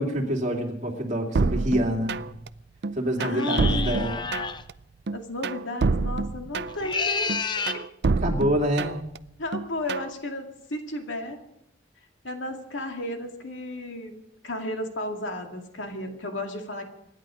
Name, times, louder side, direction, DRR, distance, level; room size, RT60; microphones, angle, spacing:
voice 1, 0.0-2.3 2.9-4.3 8.2-9.0, equal, 35° right, 0 dB, 2.7 m, -26 dB
sound 1, 1.3-2.5 2.8-4.7 5.1-6.9 7.3-9.2 9.5-10.1, right 3 dB, 60° right, 0.5 m, -27 dB
voice 2, 3.2-4.1 5.1-7.3 7.7-7.8 9.4-11.4 12.2-14.1 14.4-16.8, left 1 dB, 75° left, 3 dB, 2.2 m, -33 dB
sound 2, 3.4-4.6 6.7-7.8, left 5 dB, 25° left, 0.6 m, -29 dB
25.5 x 10.5 x 5.0 m, 0.82 s
head